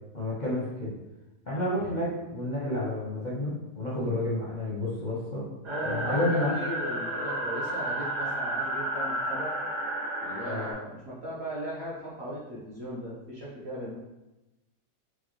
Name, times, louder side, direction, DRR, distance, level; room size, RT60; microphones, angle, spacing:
voice 1, 0.1-0.9 1.5-5.4 5.8-6.5 10.4-10.7, left 1 dB, 45° left, -9 dB, 0.6 m, -30 dB
voice 2, 5.6-9.5 10.2-14.0, equal, 55° right, -7 dB, 0.8 m, -38 dB
sound 1, 5.6-10.7, right 1 dB, 85° right, 2.0 m, -32 dB
4.6 x 2.2 x 3.0 m, 1.0 s
omnidirectional pair, 1.7 m